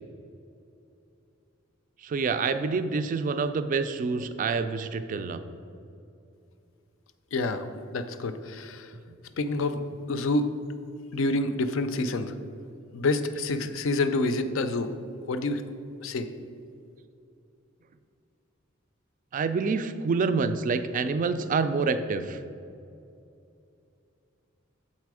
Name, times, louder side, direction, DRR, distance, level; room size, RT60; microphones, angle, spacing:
voice 1, 2.0-5.4 19.3-22.4, right 4 dB, 40° right, 10 dB, 0.3 m, -27 dB
voice 2, 7.3-7.7 7.9-8.9 9.4-9.8 10.1-10.6 11.1-12.3 12.9-14.9 15.3-15.6 16.0-16.3, left 2 dB, 70° left, 10 dB, 0.4 m, -27 dB
7.4 x 4.2 x 4.7 m, 2.6 s
head